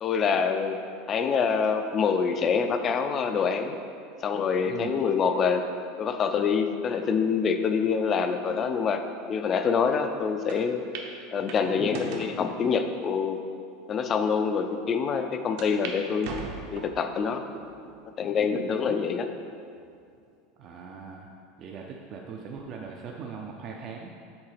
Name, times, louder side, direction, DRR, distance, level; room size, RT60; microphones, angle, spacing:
voice 1, 0.0-0.8 1.1-3.7 4.2-5.6 6.0-9.0 9.3-10.8 11.3-13.4 13.9-16.3 16.7-17.4 18.2-19.3, left 6 dB, 25° left, 7 dB, 0.4 m, -26 dB
voice 2, 4.7-5.0 20.6-21.3 21.6-24.1, right 5 dB, 35° right, 0 dB, 0.5 m, -40 dB
sound 1, 10.5-10.6 10.9-11.1 11.5-12.4 13.0-13.1 13.8-13.9 14.2-14.3 15.6-16.0 16.2-17.0 17.6-18.0 18.5-18.6 19.8-20.2, right 5 dB, 60° right, 0.9 m, -39 dB
7.7 x 3.8 x 5.7 m, 2.4 s
supercardioid pair, 170°, 0 cm